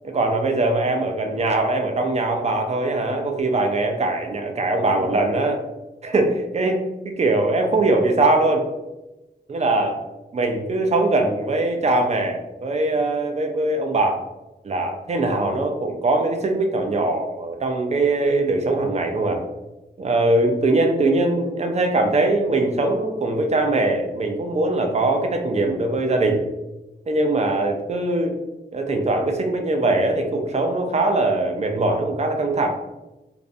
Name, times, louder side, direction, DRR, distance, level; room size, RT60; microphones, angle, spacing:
voice 1, 0.1-5.6 6.0-8.7 9.5-9.9 10.3-14.2 14.6-19.4 20.0-26.4 27.1-28.4 28.7-32.7, right 2 dB, 40° right, 4 dB, 0.4 m, -21 dB
2.4 x 2.1 x 2.5 m, 1.0 s
wide cardioid pair, 110°, 18 cm